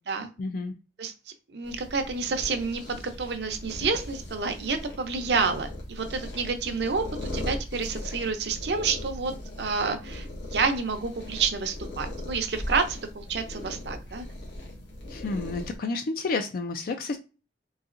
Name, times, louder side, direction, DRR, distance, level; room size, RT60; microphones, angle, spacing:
voice 1, 0.4-0.7 15.1-17.2, left 3 dB, 55° left, 7 dB, 0.4 m, -30 dB
voice 2, 1.5-9.3 9.6-14.2, right 4 dB, 65° right, 7 dB, 0.6 m, -29 dB
sound 1, 1.6-15.8, left 1 dB, 80° left, 1.2 m, -38 dB
4.0 x 2.7 x 2.5 m, 0.32 s
head